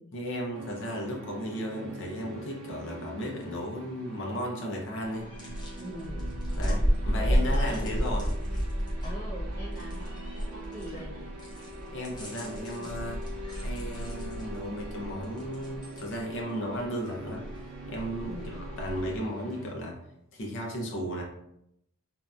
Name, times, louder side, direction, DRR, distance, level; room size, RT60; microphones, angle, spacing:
voice 1, 0.1-5.3 6.6-8.3 11.9-13.2 13.6-17.5 17.9-20.0 20.3-21.2, equal, 60° left, -1 dB, 0.6 m, -35 dB
sound 1, 0.5-19.7, right 1 dB, 90° right, 0.5 m, -45 dB
sound 2, 5.0-19.2, equal, 20° left, 0.7 m, -32 dB
voice 2, 5.8-6.3 7.1-8.0 9.0-11.3 12.8-12.9 18.2-18.5, equal, 20° right, -10 dB, 0.8 m, -43 dB
2.7 x 2.2 x 2.3 m, 0.78 s
head